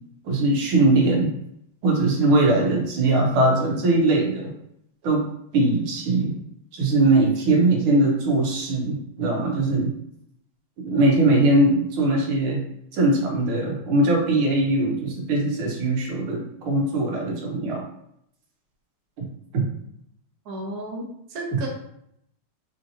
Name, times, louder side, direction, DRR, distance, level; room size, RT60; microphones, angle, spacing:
voice 1, 0.2-1.3 1.8-4.5 5.0-5.2 5.5-6.3 6.7-9.9 10.8-12.7 12.9-17.8 19.2-19.3 19.5-19.6, right 2 dB, 85° right, -1 dB, 1.8 m, -21 dB
voice 2, 20.4-21.7, right 1 dB, 60° right, -2 dB, 1.1 m, -33 dB
4.8 x 2.8 x 2.6 m, 0.74 s
omnidirectional pair, 2.3 m